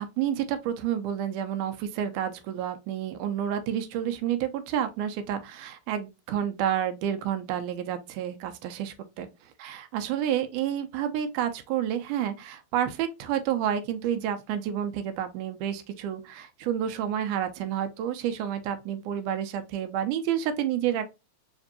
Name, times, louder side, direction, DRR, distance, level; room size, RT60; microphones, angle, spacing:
voice 1, 0.0-9.3 9.6-21.1, right 10 dB, 85° right, 2.1 m, -29 dB
5.0 x 2.6 x 2.6 m
omnidirectional pair, 3.5 m